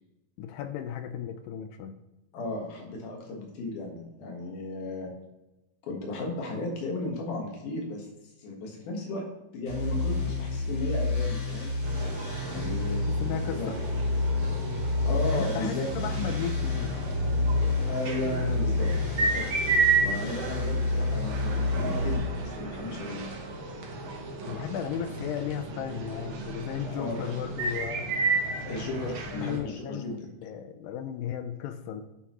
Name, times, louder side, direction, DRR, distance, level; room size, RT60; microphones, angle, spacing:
voice 1, 0.4-2.0 12.5-13.8 15.3-17.0 24.4-28.1 29.1-32.0, left 8 dB, 80° left, 9 dB, 2.2 m, -35 dB
voice 2, 2.3-5.1 5.8-8.1 8.4-9.2 9.5-11.7 12.4-13.1 13.6-13.7 15.0-15.9 17.9-23.3 26.8-27.4 28.7-30.3, left 2 dB, 65° left, 1 dB, 2.8 m, -35 dB
sound 1, 9.7-22.1, left 2 dB, 35° left, 3.7 m, -29 dB
sound 2, 11.8-29.6, right 4 dB, 80° right, 1.1 m, -32 dB
10.5 x 7.7 x 3.1 m, 0.98 s
omnidirectional pair, 4.2 m